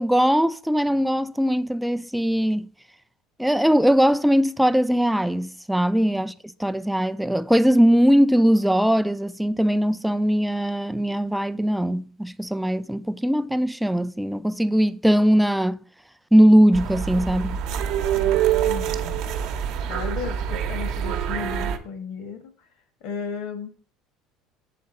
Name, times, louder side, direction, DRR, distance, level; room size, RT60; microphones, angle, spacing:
voice 1, 0.0-2.7 3.4-15.8 16.3-17.6, equal, ahead, 0.3 m, -20 dB
sound 1, 16.7-21.8, right 9 dB, 65° right, 0.8 m, -25 dB
voice 2, 18.7-19.2 19.9-22.5 23.0-23.7, left 6 dB, 65° left, 1.4 m, -34 dB
7.5 x 3.6 x 4.2 m
supercardioid pair, 95°, 0 cm